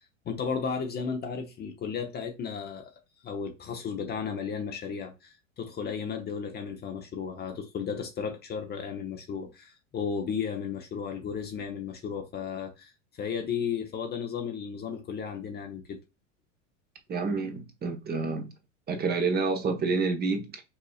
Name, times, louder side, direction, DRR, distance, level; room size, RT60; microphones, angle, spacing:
voice 1, 0.3-2.9 3.2-16.0, left 6 dB, 25° left, 0.7 m, -34 dB
voice 2, 17.1-18.5 18.9-20.6, right 4 dB, 25° right, 1.0 m, -28 dB
5.6 x 2.9 x 2.3 m
hypercardioid pair, 95°, 39 cm